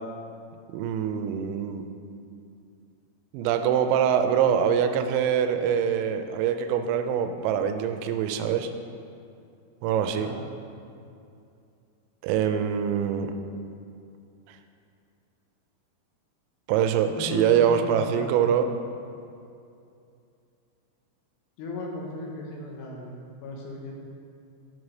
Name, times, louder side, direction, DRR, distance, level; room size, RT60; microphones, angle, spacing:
voice 1, 0.7-1.8 3.3-8.7 9.8-10.3 12.2-13.3 16.7-18.7, right 8 dB, 85° right, 7 dB, 2.9 m, -24 dB
voice 2, 17.1-18.3 21.6-23.9, left 2 dB, 75° left, -2 dB, 3.0 m, -36 dB
9.7 x 4.8 x 5.1 m, 2.5 s
omnidirectional pair, 5.3 m